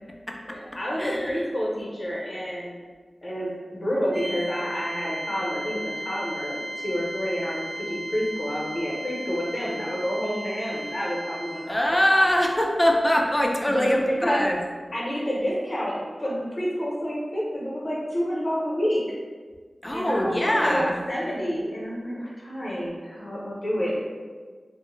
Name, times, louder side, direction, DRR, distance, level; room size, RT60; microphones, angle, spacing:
voice 1, 0.5-2.8 3.2-12.3 13.7-14.4 14.9-19.0 19.9-24.0, equal, 45° left, -5 dB, 0.8 m, -29 dB
voice 2, 1.0-1.4 11.7-14.6 19.8-21.0, equal, 20° left, 0 dB, 0.4 m, -23 dB
sound 1, 4.1-11.8, right 1 dB, 40° right, 0.7 m, -35 dB
2.1 x 2.1 x 3.1 m, 1.5 s
cardioid pair, 40°, 0 cm